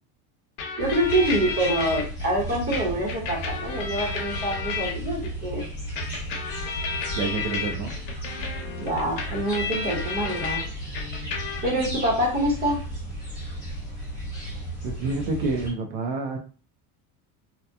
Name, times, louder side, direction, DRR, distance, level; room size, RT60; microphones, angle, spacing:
sound 1, 0.6-2.0 2.7-5.3 6.0-10.6 10.9-11.9, left 5 dB, 90° left, 0.8 m, -32 dB
sound 2, 0.8-15.7, right 1 dB, 10° left, 1.1 m, -35 dB
voice 1, 0.8-5.6 8.8-10.7 11.6-12.8, right 1 dB, 20° right, 0.9 m, -26 dB
voice 2, 7.1-7.9 14.8-16.4, right 3 dB, 70° right, 0.6 m, -28 dB
2.8 x 2.2 x 2.2 m
cardioid pair, 160°, 42 cm